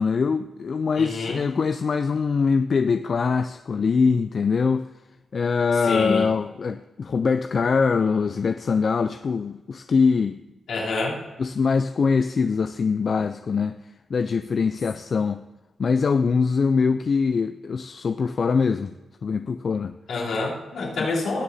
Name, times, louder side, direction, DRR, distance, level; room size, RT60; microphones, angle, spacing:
voice 1, 0.0-4.9 5.3-10.4 11.4-13.8 14.1-15.4 15.8-18.9 19.2-19.9, left 5 dB, 60° left, 9 dB, 0.4 m, -23 dB
voice 2, 1.0-1.4 5.9-6.3 10.7-11.2 20.1-21.4, left 3 dB, 85° left, -6 dB, 3.3 m, -27 dB
19.0 x 6.8 x 2.7 m, 1.1 s
cardioid pair, 55°, 0 cm